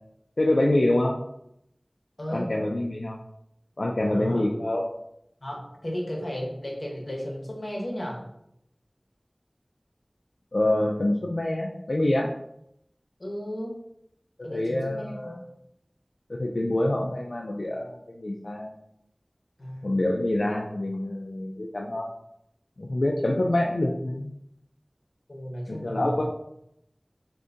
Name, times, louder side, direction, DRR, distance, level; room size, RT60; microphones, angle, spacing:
voice 1, 0.4-1.1 2.3-3.2 3.8-4.9 10.5-12.3 14.5-15.4 16.3-18.7 19.8-22.1 22.8-24.3 25.7-26.2, left 1 dB, 80° left, -1 dB, 0.3 m, -26 dB
voice 2, 2.2-2.5 4.0-4.4 5.4-8.3 13.2-13.7 14.4-15.4 19.6-19.9 25.3-26.2, equal, 65° left, -2 dB, 0.8 m, -34 dB
3.7 x 2.6 x 2.5 m, 0.78 s
wide cardioid pair, 45°, 0 cm